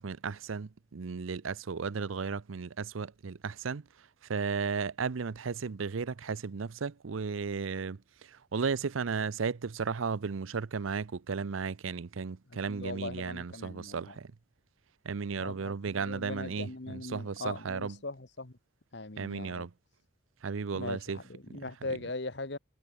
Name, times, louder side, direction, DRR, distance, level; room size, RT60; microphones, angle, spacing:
voice 1, 0.0-14.3 15.0-18.0 19.2-19.7 20.4-21.2, right 5 dB, 85° right, 0.6 m, -35 dB
voice 2, 12.7-14.2 15.4-18.5 18.9-19.7 20.7-22.6, left 2 dB, 60° left, 1.5 m, -40 dB
head